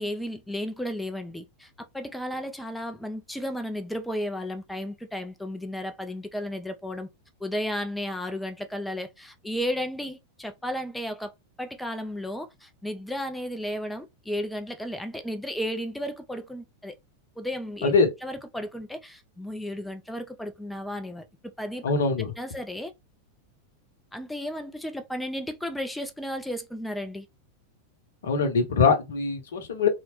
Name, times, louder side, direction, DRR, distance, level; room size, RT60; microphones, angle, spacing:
voice 1, 0.0-7.1 7.4-11.3 11.6-17.0 17.4-17.9 18.2-21.2 21.6-21.8 22.4-22.9 24.1-27.3, equal, 5° left, 0.3 m, -33 dB
voice 2, 21.8-22.3 28.2-29.9, left 4 dB, 60° left, 0.7 m, -23 dB
2.8 x 2.1 x 2.9 m
figure-of-eight pair, 90°, 0 cm